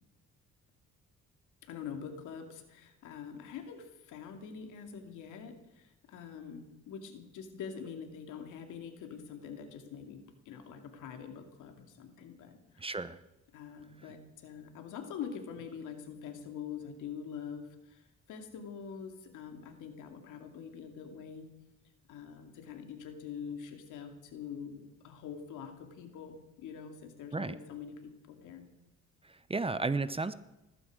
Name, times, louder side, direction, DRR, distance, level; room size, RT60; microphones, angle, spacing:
voice 1, 1.6-13.0 13.5-21.5 22.1-28.7, left 7 dB, 90° left, 5 dB, 2.5 m, -45 dB
voice 2, 12.8-13.2 27.3-27.6 29.5-30.4, right 3 dB, 20° right, 14 dB, 0.9 m, -32 dB
19.5 x 15.0 x 5.0 m, 0.99 s
cardioid pair, 90°, 30 cm